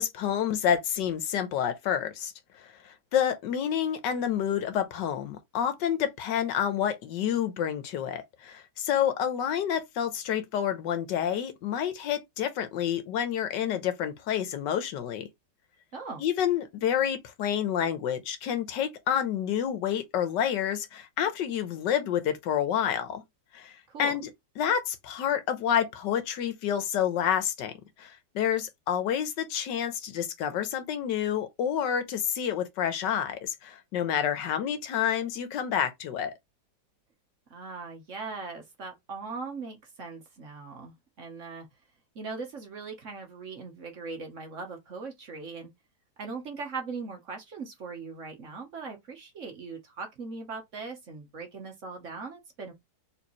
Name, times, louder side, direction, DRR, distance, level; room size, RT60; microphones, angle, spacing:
voice 1, 0.0-2.3 2.6-15.3 16.2-23.2 23.5-24.3 24.6-27.7 28.0-36.3, left 9 dB, 75° left, 1.4 m, -29 dB
voice 2, 15.9-16.2 23.9-24.2 37.5-41.7 42.1-45.7 46.2-52.7, right 4 dB, 50° right, 1.1 m, -40 dB
4.4 x 3.4 x 3.0 m
omnidirectional pair, 2.0 m